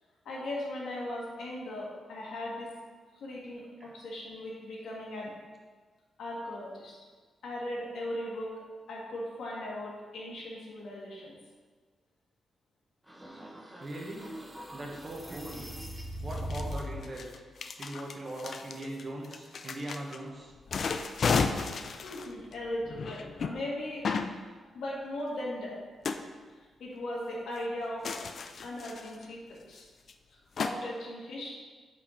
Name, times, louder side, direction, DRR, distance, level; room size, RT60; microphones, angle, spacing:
voice 1, 0.3-2.7 3.1-5.3 6.2-7.0 7.4-8.5 8.9-11.4 21.8-24.0 24.7-25.8 26.8-28.2 28.6-29.9 30.6-31.5, left 1 dB, 80° left, -4 dB, 1.7 m, -38 dB
sound 1, 13.1-17.1, equal, 5° right, 0.8 m, -40 dB
voice 2, 13.8-14.3 14.7-15.7 16.2-17.3 17.8-20.5, right 1 dB, 30° right, -2 dB, 1.2 m, -40 dB
sound 2, 15.5-15.6 16.3-20.2 20.6-23.5 24.0-24.3 26.0-26.2 28.0-29.3 29.8-29.9 30.1-30.2 30.6-30.7, left 5 dB, 50° left, 0.4 m, -33 dB
5.8 x 4.4 x 5.0 m, 1.5 s
wide cardioid pair, 140°, 0 cm